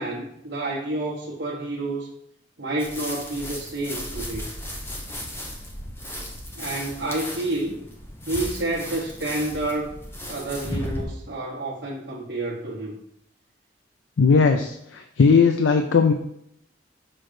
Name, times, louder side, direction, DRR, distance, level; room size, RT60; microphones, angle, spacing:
voice 1, 0.0-2.1 2.6-4.5 6.5-7.8 8.2-9.9 10.3-13.0, right 2 dB, 65° right, -4 dB, 1.0 m, -29 dB
sound 1, 2.8-11.1, equal, 15° left, 0.9 m, -35 dB
voice 2, 14.2-16.1, left 5 dB, 90° left, 6 dB, 0.4 m, -18 dB
6.2 x 3.8 x 5.0 m, 0.76 s
head